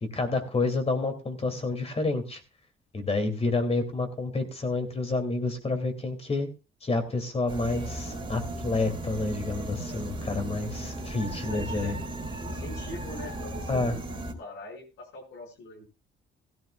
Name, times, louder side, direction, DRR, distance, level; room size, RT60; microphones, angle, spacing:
voice 1, 0.0-2.4 2.9-6.5 6.8-12.0 13.7-14.0, left 3 dB, 30° left, 6 dB, 2.9 m, -29 dB
sound 1, 7.5-14.3, right 1 dB, 25° right, 3.4 m, -36 dB
voice 2, 11.2-12.0 12.3-14.0 14.4-15.9, left 2 dB, 90° left, 2 dB, 6.0 m, -43 dB
16.0 x 14.0 x 2.4 m, 0.29 s
cardioid pair, 90°, 20 cm